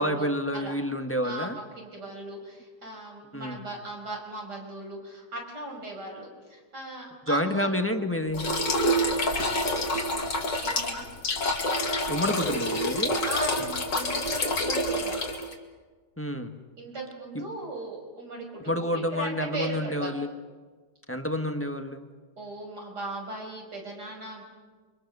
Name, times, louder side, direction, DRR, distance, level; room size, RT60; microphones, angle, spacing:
voice 1, 0.0-1.6 3.3-3.6 7.3-8.5 12.1-13.2 16.2-16.5 17.3-17.4 18.7-20.3 21.1-22.1, left 1 dB, 10° left, 6 dB, 1.2 m, -29 dB
voice 2, 1.8-7.7 10.6-11.1 13.2-15.2 16.8-20.1 22.4-24.4, right 2 dB, 70° right, 0 dB, 6.6 m, -38 dB
sound 1, 8.3-15.5, left 1 dB, 80° left, 3.0 m, -27 dB
29.5 x 24.5 x 6.7 m, 1.4 s
omnidirectional pair, 1.9 m